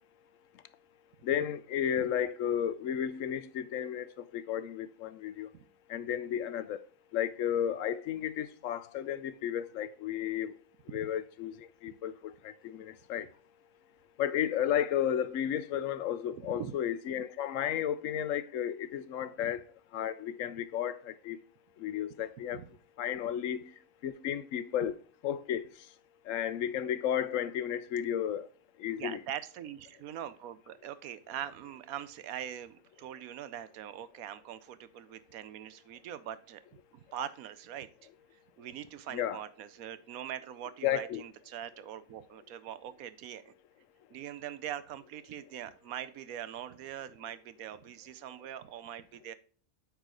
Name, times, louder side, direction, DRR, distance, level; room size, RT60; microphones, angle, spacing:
voice 1, 1.2-4.1 4.3-5.5 5.9-6.8 7.1-10.5 10.9-11.5 11.8-12.1 12.6-13.3 14.2-19.6 19.9-20.9 21.3-21.4 21.8-22.6 23.0-23.6 24.0-24.9 25.2-25.7 26.3-28.4 28.8-29.2 39.1-39.4 40.8-41.2, left 10 dB, 70° left, 0.9 m, -33 dB
voice 2, 29.0-36.6 37.1-37.9 38.6-43.5 44.1-49.3, right 10 dB, 85° right, 1.1 m, -42 dB
8.5 x 4.7 x 3.8 m
omnidirectional pair, 1.5 m